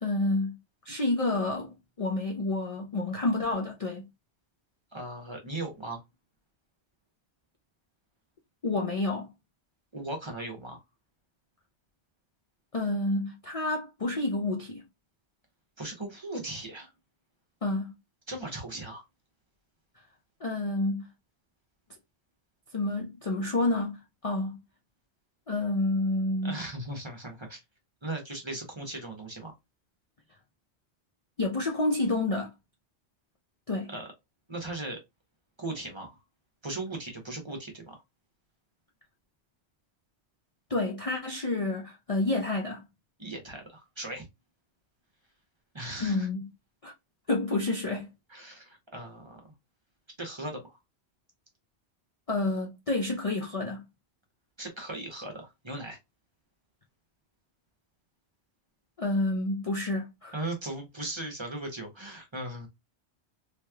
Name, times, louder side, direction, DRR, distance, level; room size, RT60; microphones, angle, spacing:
voice 1, 0.0-0.6 0.9-4.1 8.6-9.3 12.7-14.8 17.6-17.9 20.4-21.1 22.7-24.0 24.2-24.6 25.5-26.6 31.4-32.5 33.7-33.9 40.7-42.8 46.0-46.5 46.8-46.9 47.3-48.1 52.3-53.8 59.0-60.3, left 2 dB, 40° left, 0.5 m, -29 dB
voice 2, 4.9-6.0 9.9-10.8 15.8-16.9 18.3-19.0 26.4-27.6 28.0-29.5 33.9-34.1 34.5-35.0 35.6-36.2 36.6-38.0 43.2-44.3 45.7-46.3 48.3-49.4 50.2-50.8 54.6-56.0 60.3-62.7, right 2 dB, 25° right, 1.0 m, -38 dB
3.3 x 3.2 x 2.2 m
omnidirectional pair, 1.1 m